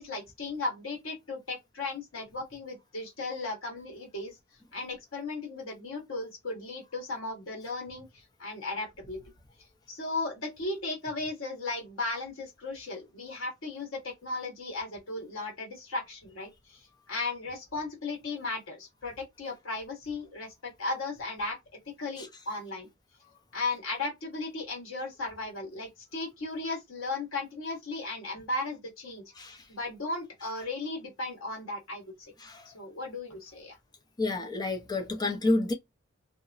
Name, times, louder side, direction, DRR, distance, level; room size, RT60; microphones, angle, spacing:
voice 1, 0.0-4.4 4.7-9.2 9.9-16.8 17.1-21.6 22.0-22.9 23.5-29.2 29.7-32.3 32.7-33.7, left 2 dB, 90° left, 1.4 m, -36 dB
voice 2, 32.4-32.7 34.2-35.7, left 2 dB, 20° left, 0.5 m, -29 dB
2.9 x 2.1 x 2.4 m
head